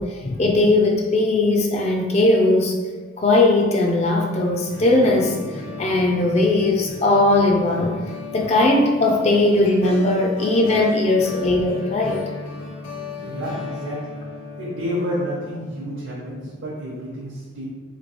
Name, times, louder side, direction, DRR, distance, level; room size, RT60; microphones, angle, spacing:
voice 1, 0.0-2.8 3.2-8.0 8.3-12.2, left 2 dB, 30° left, 1 dB, 0.3 m, -19 dB
sound 1, 4.2-16.4, left 4 dB, 70° left, 0.8 m, -35 dB
voice 2, 13.2-14.2 14.6-17.7, equal, 70° right, -6 dB, 0.8 m, -30 dB
3.0 x 2.7 x 4.3 m, 1.4 s
head